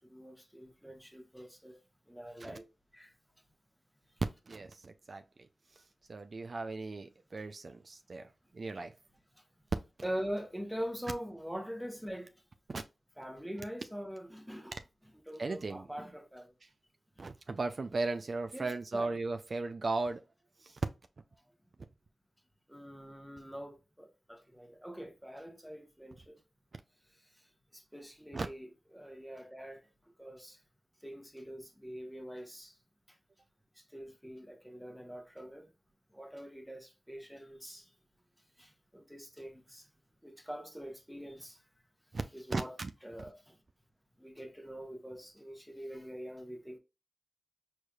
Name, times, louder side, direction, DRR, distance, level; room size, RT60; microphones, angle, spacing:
voice 1, 0.1-1.8 2.1-2.6 2.9-3.1 10.0-12.3 13.2-14.8 15.1-16.5 18.5-19.2 22.7-26.4 27.7-29.8 30.2-30.6 31.0-32.7 33.9-35.7 36.1-37.8 38.6-39.8 40.2-41.6 42.3-43.6 44.2-46.8, equal, ahead, 1.1 m, -44 dB
voice 2, 4.5-5.2 6.1-8.3 8.5-8.9 10.0-10.1 12.7-12.8 15.4-15.9 17.2-20.2 20.6-20.8 28.3-28.5 42.5-42.9, right 3 dB, 55° right, 0.4 m, -37 dB
4.4 x 3.2 x 2.3 m
cardioid pair, 50°, 0 cm